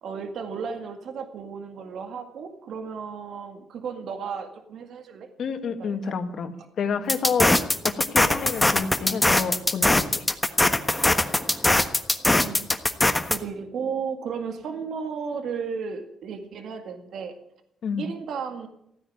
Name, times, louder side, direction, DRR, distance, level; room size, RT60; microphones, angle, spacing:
voice 1, 0.0-5.3 5.7-6.1 7.0-7.2 12.4-12.7 13.3-17.3 18.0-18.7, right 6 dB, 70° right, 7 dB, 2.0 m, -34 dB
voice 2, 5.4-10.3 17.8-18.1, left 6 dB, 60° left, 8 dB, 1.8 m, -29 dB
sound 1, 7.1-13.4, left 1 dB, 10° left, 1.3 m, -21 dB
15.5 x 9.6 x 9.4 m, 0.74 s
cardioid pair, 90°, 0 cm